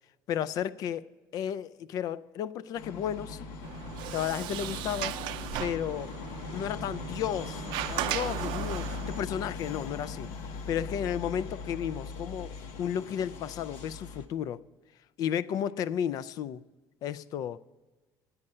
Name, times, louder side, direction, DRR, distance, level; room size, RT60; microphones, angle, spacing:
voice 1, 0.3-1.1 1.3-3.5 4.1-5.2 5.6-6.1 6.5-10.3 10.7-12.5 12.8-14.6 15.2-16.6 17.0-17.6, left 9 dB, 50° left, 0.3 m, -33 dB
sound 1, 2.7-14.3, left 4 dB, 80° left, 1.1 m, -40 dB
Sliding door, 3.6-9.2, right 13 dB, 70° right, 0.5 m, -37 dB
9.6 x 8.8 x 5.4 m
cardioid pair, 160°, 8 cm